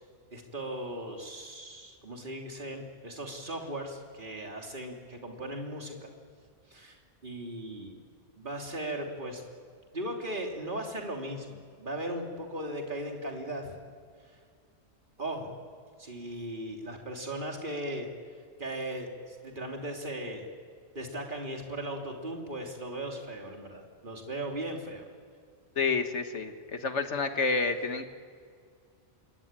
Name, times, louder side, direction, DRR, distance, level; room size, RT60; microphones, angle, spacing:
voice 1, 0.3-6.1 6.7-7.0 7.2-8.0 8.3-9.4 9.9-13.7 15.2-15.5 16.0-18.1 18.6-20.5 20.9-25.1, right 1 dB, 45° right, 1 dB, 3.2 m, -37 dB
voice 2, 25.8-28.1, left 4 dB, 80° left, 7 dB, 1.8 m, -29 dB
26.5 x 23.0 x 8.9 m, 2.1 s
omnidirectional pair, 1.2 m